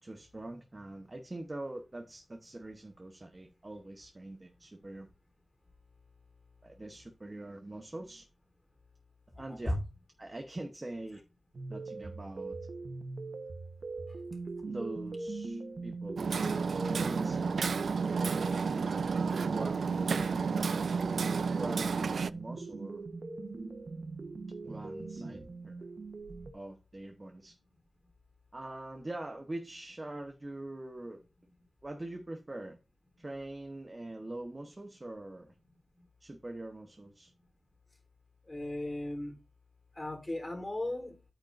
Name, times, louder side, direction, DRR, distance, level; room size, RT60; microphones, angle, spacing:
voice 1, 0.0-5.1 6.6-8.3 9.4-9.8 10.2-11.2 11.7-12.6 14.7-16.6 16.9-18.3 19.5-20.1 21.5-23.1 24.6-25.9 26.5-27.6 28.5-31.2 31.8-32.8 33.2-35.5 36.2-37.3, right 1 dB, 30° right, 1.1 m, -43 dB
voice 2, 9.3-9.8 38.5-39.4 40.0-41.2, left 1 dB, 25° left, 3.8 m, -36 dB
sound 1, 11.5-26.5, right 3 dB, 60° right, 1.1 m, -41 dB
Hammer, 16.2-22.3, right 5 dB, 85° right, 0.4 m, -31 dB
10.5 x 8.9 x 2.6 m
wide cardioid pair, 90°, 0 cm